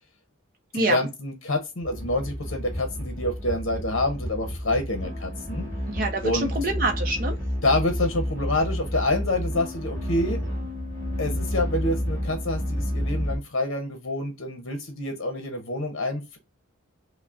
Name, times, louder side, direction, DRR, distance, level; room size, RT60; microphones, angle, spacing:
voice 1, 0.7-5.7 6.2-6.5 7.6-10.4 11.2-16.4, left 2 dB, 60° left, 0.7 m, -27 dB
sound 1, 1.8-13.4, equal, 15° left, 1.9 m, -30 dB
voice 2, 5.9-7.4, right 2 dB, 40° right, 0.6 m, -26 dB
5.7 x 2.1 x 2.4 m
head